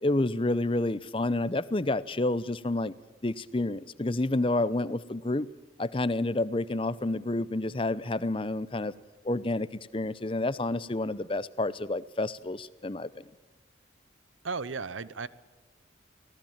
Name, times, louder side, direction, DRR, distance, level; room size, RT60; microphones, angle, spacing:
voice 1, 0.0-2.9 3.2-5.5 5.8-8.9 9.2-9.7 9.9-13.2, left 2 dB, 25° left, 17 dB, 0.7 m, -29 dB
voice 2, 14.4-15.3, right 4 dB, 85° right, 17 dB, 0.9 m, -34 dB
24.0 x 18.0 x 7.3 m, 1.2 s
head